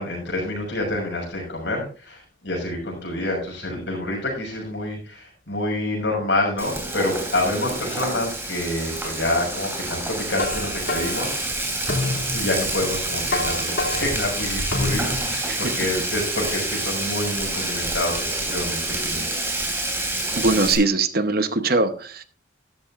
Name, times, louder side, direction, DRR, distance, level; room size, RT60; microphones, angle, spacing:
voice 1, 0.0-11.4 12.3-19.3, left 1 dB, 65° left, -1 dB, 6.5 m, -27 dB
Frying (food), 6.6-20.7, right 2 dB, 10° right, 3.2 m, -28 dB
sound 1, 10.0-15.4, left 2 dB, 85° left, 2.6 m, -29 dB
voice 2, 20.3-22.2, right 3 dB, 50° right, 10 dB, 0.9 m, -21 dB
13.5 x 12.0 x 2.5 m, 0.39 s
head